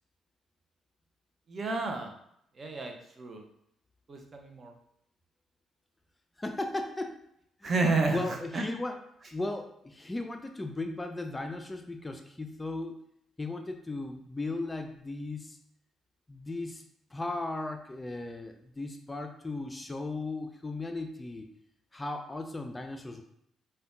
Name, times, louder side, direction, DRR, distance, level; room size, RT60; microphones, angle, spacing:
voice 1, 1.5-2.1 2.6-3.4 4.1-4.7 7.6-8.7, right 3 dB, 40° right, 3 dB, 0.6 m, -31 dB
voice 2, 6.4-7.2 7.6-7.7 8.1-9.0 9.3-13.0 13.4-15.6 16.3-16.8 17.1-21.5 21.9-23.2, left 2 dB, 20° left, 5 dB, 0.3 m, -36 dB
5.0 x 2.2 x 2.4 m, 0.73 s
figure-of-eight pair, 45°, 0 cm